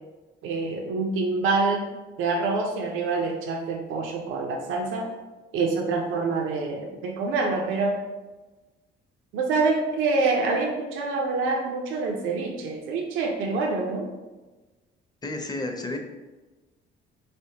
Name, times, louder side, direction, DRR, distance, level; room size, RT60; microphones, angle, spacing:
voice 1, 0.4-1.9 2.2-5.1 5.5-8.0 9.3-14.1, right 3 dB, 90° right, 1 dB, 0.5 m, -26 dB
voice 2, 15.2-16.0, left 2 dB, 20° left, 4 dB, 0.6 m, -31 dB
4.2 x 3.4 x 2.8 m, 1.2 s
cardioid pair, 90°, 20 cm